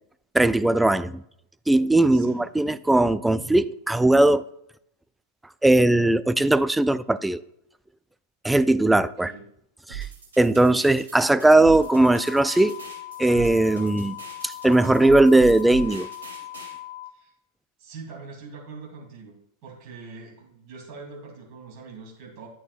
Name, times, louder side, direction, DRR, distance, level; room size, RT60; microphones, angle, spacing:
voice 1, 0.3-1.2 1.7-4.4 5.6-7.4 8.4-9.3 9.9-10.1 10.4-12.8 13.2-14.2 14.4-16.1, right 2 dB, 5° right, 0.3 m, -19 dB
voice 2, 2.1-2.4 9.0-9.4 17.1-17.3 17.8-19.3 19.6-22.5, right 4 dB, 45° right, 2.6 m, -43 dB
sound 1, 9.9-16.7, right 10 dB, 65° right, 2.7 m, -39 dB
sound 2, 11.8-17.1, left 14 dB, 80° left, 0.6 m, -39 dB
10.5 x 8.5 x 2.4 m
figure-of-eight pair, 90°, 0 cm